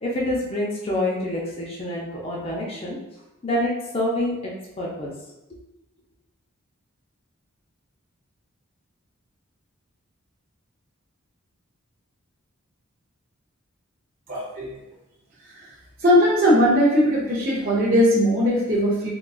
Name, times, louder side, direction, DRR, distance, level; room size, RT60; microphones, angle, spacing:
voice 1, 0.0-3.0 3.4-4.5 4.8-5.1, left 1 dB, 25° left, -4 dB, 0.5 m, -26 dB
voice 2, 14.3-14.8 15.5-15.7 16.0-19.1, equal, 40° right, -6 dB, 0.6 m, -19 dB
3.7 x 2.3 x 2.3 m, 0.93 s
head